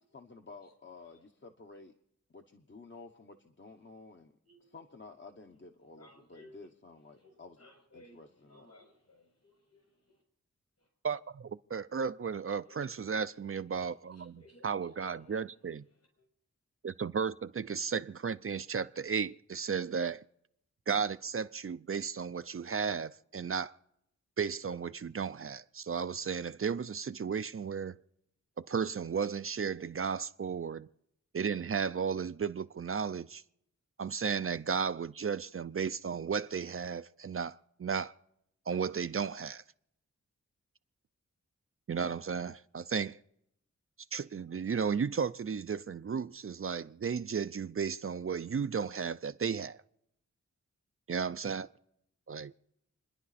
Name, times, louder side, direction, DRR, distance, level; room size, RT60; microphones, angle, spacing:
voice 1, 0.1-1.9 2.3-4.3 4.6-7.7 7.9-8.7, left 3 dB, 40° left, 1.1 m, -52 dB
voice 2, 6.0-6.6 7.2-7.3 7.6-8.2 8.5-9.8 12.7-12.8 14.4-15.4, left 1 dB, 60° left, 7.1 m, -58 dB
voice 3, 11.0-15.8 16.8-20.2 20.9-23.8 24.4-28.0 28.6-30.9 31.3-33.4 34.0-38.1 38.7-39.6 41.9-43.2 44.1-49.8 51.1-51.7 52.3-52.5, right 6 dB, 50° right, 0.5 m, -34 dB
28.5 x 10.5 x 4.2 m
wide cardioid pair, 95°, 29 cm